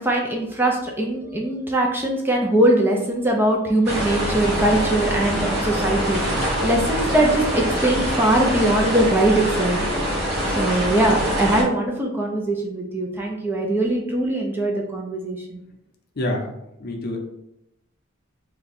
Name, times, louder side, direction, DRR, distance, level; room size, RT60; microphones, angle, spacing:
voice 1, 0.0-6.2 6.6-9.8 10.6-15.6, right 1 dB, 10° right, 0 dB, 0.4 m, -21 dB
sound 1, 3.8-11.6, equal, 55° right, 1.0 m, -24 dB
voice 2, 16.2-16.5 16.8-17.2, left 1 dB, 50° left, 1 dB, 0.6 m, -26 dB
2.7 x 2.2 x 4.0 m, 0.82 s
head